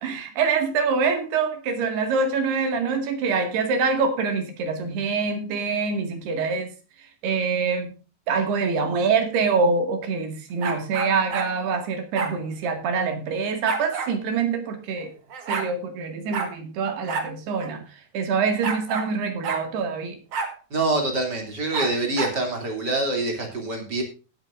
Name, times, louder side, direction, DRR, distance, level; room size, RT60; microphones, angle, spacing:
voice 1, 0.0-6.7 7.2-7.9 8.3-15.1 15.5-17.8 18.1-20.2, right 5 dB, 80° right, 6 dB, 4.1 m, -25 dB
sound 1, 10.6-11.5 12.1-12.3 13.7-14.1 15.0-15.1 15.3-15.7 16.3-16.5 17.1-17.3 17.6-17.7 18.6-19.1 19.4-19.6 20.3-20.5 21.7-22.4, right 5 dB, 50° right, 2.2 m, -29 dB
voice 2, 20.7-24.0, right 2 dB, 30° right, 3 dB, 3.0 m, -25 dB
18.5 x 8.6 x 2.6 m, 0.32 s
omnidirectional pair, 4.6 m